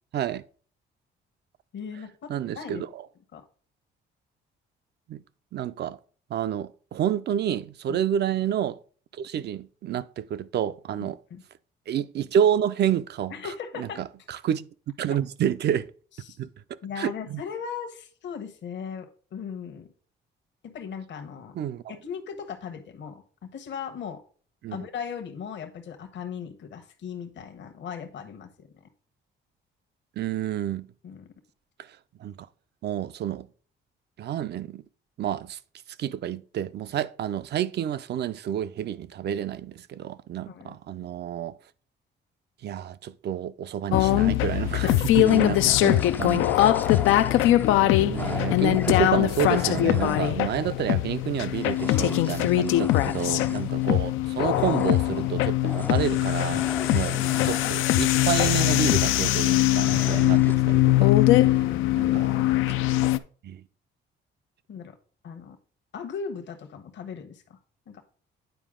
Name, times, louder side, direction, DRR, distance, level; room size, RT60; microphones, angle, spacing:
voice 1, 0.1-0.4 2.3-3.1 5.1-5.2 5.5-6.0 6.3-8.8 9.1-11.2 11.9-13.3 13.8-14.7 15.0-15.9 16.4-16.5 17.0-17.4 21.5-21.8 24.6-24.8 30.2-30.9 32.2-32.5 32.8-33.5 34.2-34.8 35.2-35.6 36.0-41.6 42.6-46.5 47.8-56.7 56.9-57.2 57.4-61.5 62.0-62.3 63.4-63.6, right 10 dB, 60° right, 0.5 m, -29 dB
voice 2, 1.7-2.3 2.6-2.9 3.3-3.4 7.9-8.0 11.0-11.4 13.3-14.0 16.2-16.4 16.8-19.9 20.6-21.5 21.9-24.2 24.7-28.7 31.0-31.3 40.5-40.8 44.7-45.4 47.7-48.0 56.8-56.9 61.4-62.9 64.7-64.9 65.2-65.6 65.9-67.6 67.9-68.0, left 7 dB, 65° left, 1.1 m, -38 dB
sound 1, 43.9-63.2, left 15 dB, 90° left, 0.4 m, -22 dB
sound 2, 45.3-50.7 51.3-53.9 54.4-58.1 58.3-59.6 59.8-60.6, left 2 dB, 10° left, 0.3 m, -37 dB
9.2 x 4.5 x 3.7 m
cardioid pair, 90°, 20 cm